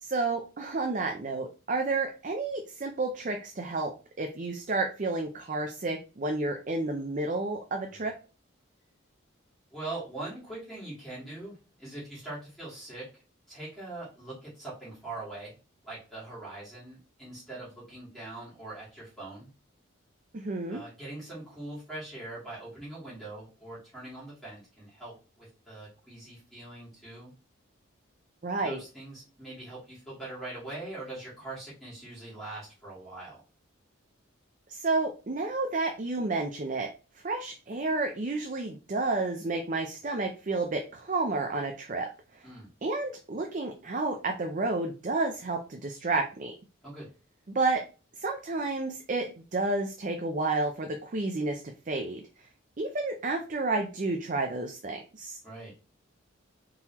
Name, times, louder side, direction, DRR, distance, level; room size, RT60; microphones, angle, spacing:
voice 1, 0.0-3.9 4.2-8.1 20.3-20.8 28.4-28.8 34.7-36.9 37.2-42.1 42.3-42.5 42.8-46.5 47.5-47.8 48.2-52.2 52.8-55.4, right 3 dB, 40° right, 4 dB, 0.5 m, -31 dB
voice 2, 9.7-13.2 13.5-15.5 15.8-19.5 20.7-27.3 28.6-33.4 42.4-42.7 46.8-47.1 55.4-55.7, right 2 dB, ahead, -9 dB, 2.6 m, -42 dB
4.4 x 3.8 x 2.9 m, 0.34 s
head